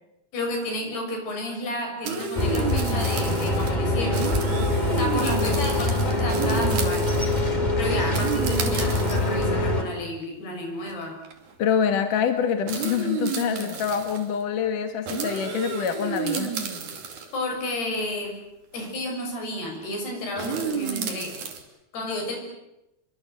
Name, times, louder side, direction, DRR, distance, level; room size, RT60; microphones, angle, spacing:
voice 1, 0.3-4.3 5.0-7.1 7.8-11.2 17.3-18.3 18.7-21.3 21.9-22.4, left 1 dB, 80° left, 2 dB, 8.7 m, -31 dB
sound 1, 2.0-3.7 4.0-7.5 8.1-9.4 10.2-10.3 10.9-11.0 11.2-11.5 12.7-14.3 15.1-17.4 18.8-18.9 20.4-21.6, right 5 dB, 55° right, 3.8 m, -31 dB
sound 2, 2.4-9.8, left 1 dB, 15° left, 2.4 m, -24 dB
voice 2, 11.6-16.5, left 7 dB, 60° left, 7 dB, 3.1 m, -25 dB
29.0 x 23.5 x 7.8 m, 0.90 s
omnidirectional pair, 4.6 m